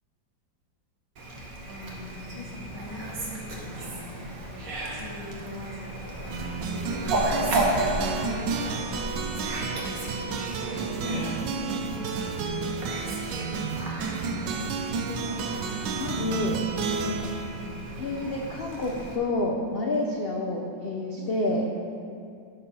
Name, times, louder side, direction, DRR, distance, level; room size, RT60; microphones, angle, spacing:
Fowl, 1.2-19.2, right 1 dB, 55° right, 1.5 m, -34 dB
voice 1, 2.3-4.3 4.9-6.3 6.6-7.6 8.1-13.5 20.0-20.1 21.1-21.3, left 2 dB, 15° left, -4 dB, 0.9 m, -43 dB
sound 1, 6.3-18.6, right 5 dB, 75° right, 1.3 m, -32 dB
voice 2, 16.0-16.6 17.0-17.3 18.0-21.7, left 2 dB, 75° left, 0 dB, 0.5 m, -29 dB
12.0 x 4.2 x 5.4 m, 2.4 s
omnidirectional pair, 2.0 m